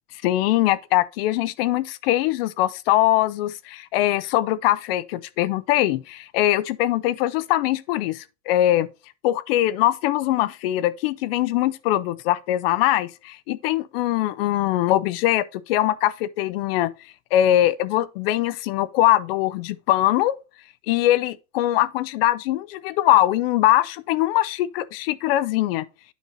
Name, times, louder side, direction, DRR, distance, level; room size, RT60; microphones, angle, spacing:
voice 1, 0.2-8.9 9.2-16.9 17.3-20.4 20.9-25.9, left 14 dB, 50° left, 0.4 m, -22 dB
9.2 x 5.2 x 2.8 m
supercardioid pair, 160°, 38 cm